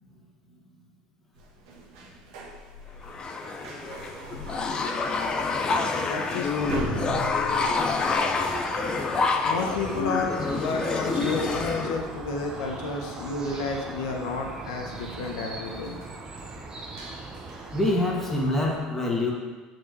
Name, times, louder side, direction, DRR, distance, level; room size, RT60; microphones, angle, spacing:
sound 1, 1.3-11.6 11.9-12.0 12.3-18.4, right 2 dB, 80° right, 1.4 m, -42 dB
sound 2, 3.0-12.0, left 4 dB, 30° left, 0.7 m, -27 dB
voice 1, 5.9-6.9 9.5-16.0, left 3 dB, 80° left, 2 dB, 1.1 m, -31 dB
voice 2, 7.5-7.9 17.7-19.3, left 2 dB, 10° left, -2 dB, 1.8 m, -26 dB
sound 3, 8.3-18.8, right 3 dB, 25° right, 1.1 m, -39 dB
7.5 x 4.7 x 4.8 m, 1.3 s
supercardioid pair, 95°, 3 cm